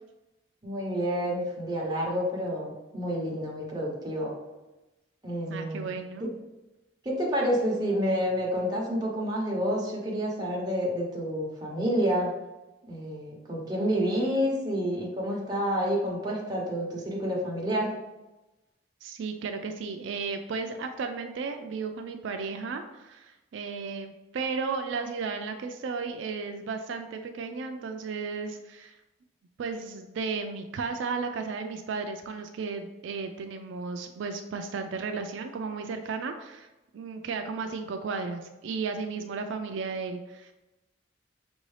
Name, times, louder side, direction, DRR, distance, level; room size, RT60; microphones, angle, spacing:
voice 1, 0.6-4.3 5.2-6.0 7.0-12.3 12.9-17.9, equal, 20° right, -3 dB, 0.9 m, -29 dB
voice 2, 5.5-6.3 19.0-29.0 29.6-36.7 36.9-40.5, right 4 dB, 80° right, 5 dB, 0.3 m, -34 dB
5.4 x 2.6 x 3.2 m, 1.0 s
head